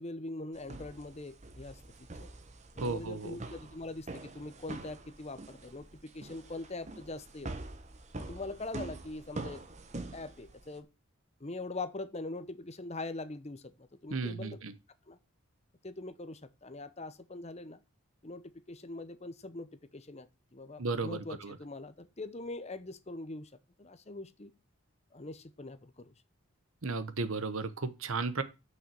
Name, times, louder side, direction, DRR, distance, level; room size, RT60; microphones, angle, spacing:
voice 1, 0.0-1.8 2.2-2.3 2.8-5.9 6.1-7.7 8.2-9.6 10.1-10.9 11.4-14.6 15.1-15.2 15.8-17.8 18.2-18.4 18.7-23.5 23.8-24.5 25.1-26.1, left 2 dB, 30° left, 0.7 m, -42 dB
sound 1, 0.5-10.8, right 2 dB, 30° right, 0.9 m, -45 dB
voice 2, 2.8-3.4 14.1-14.7 20.8-21.6 26.8-28.4, right 3 dB, 70° right, 1.0 m, -34 dB
6.4 x 5.7 x 6.9 m
head